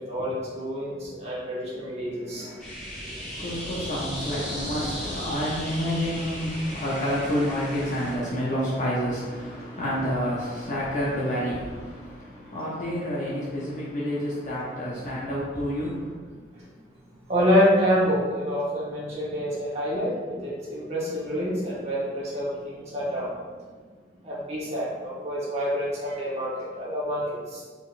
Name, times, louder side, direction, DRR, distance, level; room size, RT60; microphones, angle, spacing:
voice 1, 0.0-2.6 16.5-16.6 17.3-23.3 24.2-27.6, equal, 35° right, -7 dB, 1.3 m, -27 dB
sound 1, 2.6-8.1, equal, 5° left, 1.5 m, -36 dB
voice 2, 3.3-16.2, equal, 45° left, -7 dB, 0.7 m, -29 dB
4.2 x 3.8 x 2.5 m, 1.5 s
head